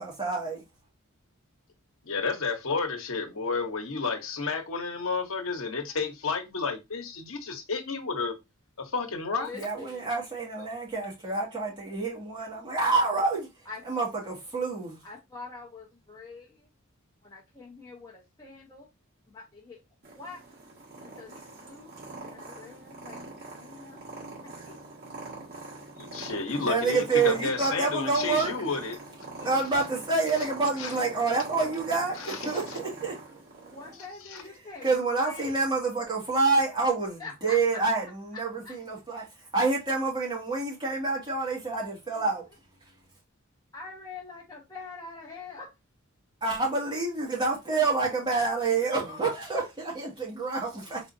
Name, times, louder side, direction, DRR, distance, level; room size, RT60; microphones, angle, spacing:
voice 1, 0.0-0.6 9.5-13.5 13.9-15.0 26.7-28.5 29.4-33.7 34.8-39.3 39.5-42.5 46.4-51.0, right 4 dB, 20° right, 2.0 m, -28 dB
voice 2, 2.1-8.3 8.8-9.5 25.9-29.0 30.8-30.9 32.2-32.5 34.3-34.4, left 4 dB, 70° left, 1.0 m, -31 dB
voice 3, 9.4-10.1 12.8-12.9 13.6-13.8 15.0-16.7 17.2-18.9 19.3-19.8 20.1-20.4 21.0-23.2 23.6-24.0 24.4-24.8 29.4-29.5 33.7-35.5 37.2-37.6 38.6-38.7 42.1-42.3 43.7-45.7 46.8-46.9, left 3 dB, 20° left, 0.9 m, -44 dB
Purr, 20.0-34.0, right 2 dB, 50° right, 2.0 m, -43 dB
4.2 x 3.6 x 2.6 m
head